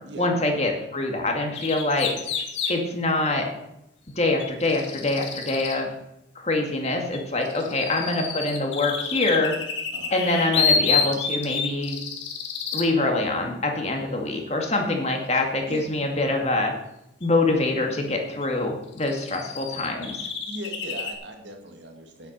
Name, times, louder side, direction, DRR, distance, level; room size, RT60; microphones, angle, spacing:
voice 1, 0.2-2.1 2.7-3.5 4.2-5.9 6.4-9.6 10.1-12.0 12.7-16.7 17.2-20.2, left 2 dB, 35° left, 2 dB, 2.2 m, -25 dB
sound 1, 1.5-2.7 4.4-5.8 7.1-12.9 17.2-17.3 18.4-18.5 18.9-21.1, left 6 dB, 85° left, 2.2 m, -28 dB
voice 2, 20.5-22.3, right 1 dB, 75° right, 3 dB, 2.3 m, -39 dB
9.9 x 8.1 x 6.7 m, 0.85 s
head